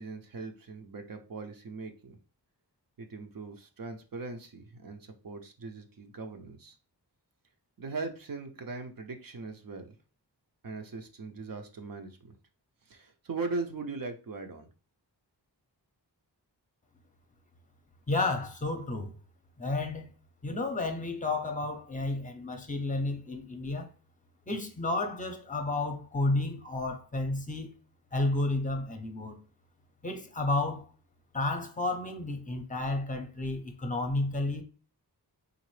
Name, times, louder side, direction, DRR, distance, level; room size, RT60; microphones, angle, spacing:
voice 1, 0.0-2.2 3.0-6.8 7.8-10.0 10.6-12.4 12.9-14.7, right 3 dB, 55° right, 0.6 m, -40 dB
voice 2, 18.1-19.1 19.6-20.1 20.4-23.9 24.5-27.7 28.1-29.4 30.0-30.9 31.3-34.6, left 2 dB, 20° left, 0.7 m, -31 dB
3.8 x 2.5 x 3.1 m
wide cardioid pair, 75°, 42 cm